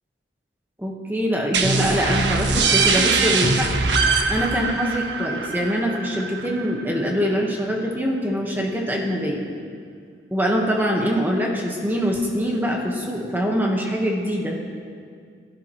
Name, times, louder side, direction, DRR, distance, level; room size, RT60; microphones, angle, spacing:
voice 1, 0.8-3.7 4.3-9.4 10.3-14.6, equal, 10° right, -1 dB, 1.4 m, -24 dB
sound 1, 1.5-7.0, right 4 dB, 70° right, 1.3 m, -22 dB
29.5 x 12.0 x 3.2 m, 2.1 s
head